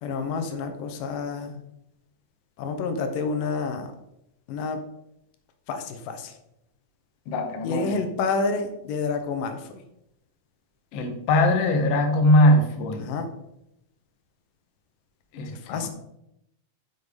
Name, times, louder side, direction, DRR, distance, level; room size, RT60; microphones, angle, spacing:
voice 1, 0.0-1.6 2.6-3.9 4.5-4.8 5.7-6.3 7.6-9.8 13.0-13.3 15.5-15.9, left 4 dB, 90° left, 6 dB, 2.5 m, -29 dB
voice 2, 7.3-8.0 10.9-13.1 15.3-15.9, left 1 dB, 60° left, 4 dB, 1.7 m, -21 dB
7.8 x 7.0 x 3.6 m, 0.83 s
omnidirectional pair, 3.9 m